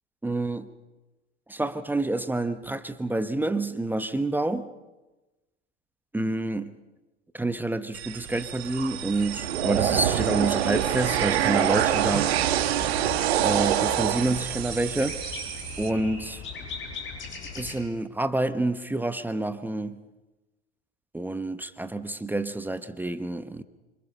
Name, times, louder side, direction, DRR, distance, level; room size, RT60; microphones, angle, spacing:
voice 1, 0.2-0.7 1.5-4.7 6.1-6.8 7.3-12.4 13.4-15.2 15.8-16.4 17.6-20.0 21.1-23.6, right 2 dB, 5° right, 11 dB, 0.9 m, -28 dB
sound 1, 7.9-15.9, right 11 dB, 60° right, 1.6 m, -26 dB
sound 2, 11.6-17.8, left 5 dB, 35° left, 7.5 m, -39 dB
27.0 x 25.0 x 5.4 m, 1.1 s
figure-of-eight pair, 90°, 35 cm